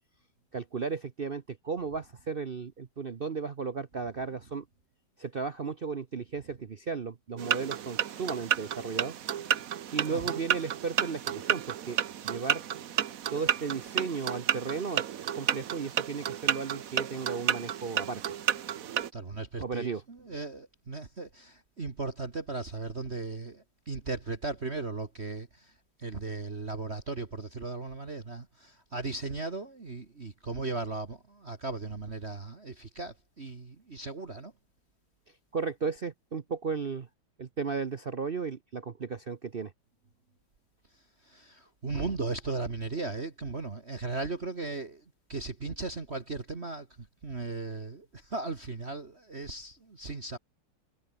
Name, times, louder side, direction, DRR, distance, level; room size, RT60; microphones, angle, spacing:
voice 1, 0.5-4.6 5.2-9.1 9.9-12.0 12.2-12.6 13.3-15.1 15.3-18.2 19.6-20.0 35.5-37.1 37.4-39.7, right 5 dB, 75° right, 0.5 m, -35 dB
sound 1, 7.4-19.1, right 10 dB, 55° right, 1.0 m, -31 dB
voice 2, 10.1-10.4 19.1-25.7 26.0-34.5 41.2-45.0 45.3-50.4, right 3 dB, 30° right, 2.0 m, -37 dB
omnidirectional pair, 2.4 m